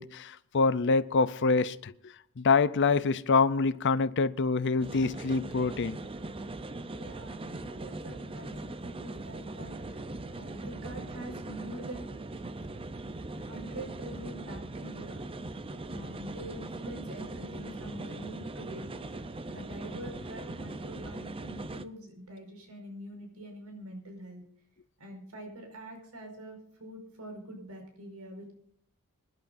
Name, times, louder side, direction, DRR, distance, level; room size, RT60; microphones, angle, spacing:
voice 1, 0.0-1.9 2.4-6.0, left 4 dB, 55° left, 0.6 m, -26 dB
sound 1, 4.8-21.9, right 2 dB, 25° right, 0.6 m, -40 dB
voice 2, 6.9-12.1 13.3-15.4 15.9-18.9 19.5-24.4 25.0-28.5, right 1 dB, 85° right, 5.3 m, -45 dB
26.0 x 11.0 x 2.6 m
head